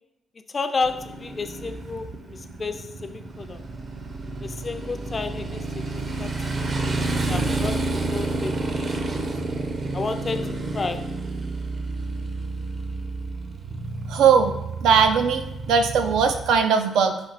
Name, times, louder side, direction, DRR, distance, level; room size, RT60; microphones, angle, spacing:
voice 1, 0.5-3.6 4.4-9.3 9.9-11.1, left 4 dB, 35° left, 9 dB, 0.4 m, -32 dB
Motorcycle, 0.8-16.6, right 2 dB, 40° right, 0.6 m, -30 dB
voice 2, 14.1-14.5 14.8-17.2, right 6 dB, 85° right, 6 dB, 0.4 m, -19 dB
4.4 x 2.7 x 4.0 m, 0.95 s
cardioid pair, 90°, 0 cm